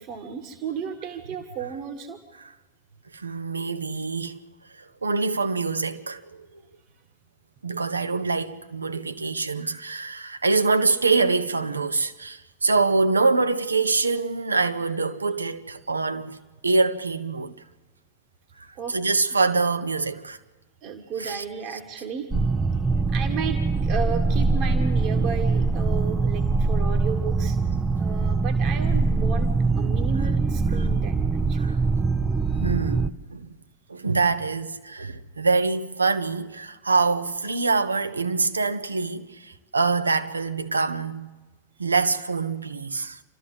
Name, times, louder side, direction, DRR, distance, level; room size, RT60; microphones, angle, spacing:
voice 1, 0.0-2.2 18.7-19.0 20.8-22.3 23.1-27.6 28.0-29.5 29.8-31.8, right 6 dB, 40° right, 1.4 m, -33 dB
voice 2, 3.1-4.3 5.0-6.2 7.6-16.4 16.6-17.5 18.9-20.4 21.2-21.4 21.7-21.8 31.6-31.8 32.6-33.5 33.9-41.3 41.8-43.2, right 4 dB, 75° right, 0.8 m, -25 dB
sound 1, 22.3-33.1, right 3 dB, 15° right, 0.5 m, -23 dB
27.5 x 13.0 x 7.9 m
figure-of-eight pair, 90°, 0 cm